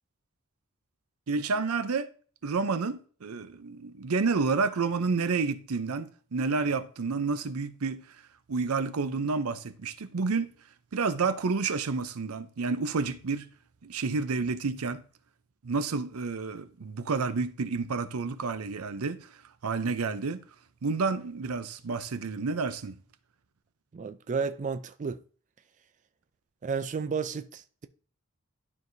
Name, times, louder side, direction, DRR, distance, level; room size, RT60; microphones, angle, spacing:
voice 1, 1.3-2.1 2.4-8.0 8.5-10.5 10.9-13.5 13.8-15.0 15.6-19.3 19.6-20.4 20.8-23.0, right 4 dB, 85° right, 0.6 m, -30 dB
voice 2, 23.9-25.2 26.6-27.9, right 5 dB, 35° right, 0.4 m, -32 dB
12.0 x 4.6 x 2.7 m
head